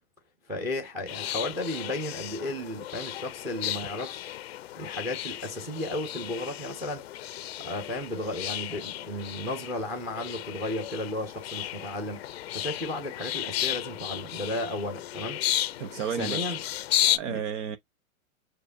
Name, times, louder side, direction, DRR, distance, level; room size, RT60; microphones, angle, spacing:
voice 1, 0.5-4.4 4.8-7.0 7.6-12.2 12.5-15.4 16.2-16.6 17.3-17.5, left 1 dB, 10° right, 0.7 m, -34 dB
sound 1, 1.1-17.2, left 13 dB, 50° left, 0.5 m, -34 dB
voice 2, 15.8-16.5 17.0-17.8, right 7 dB, 60° right, 0.8 m, -32 dB
6.7 x 2.7 x 2.5 m
hypercardioid pair, 145°, 42 cm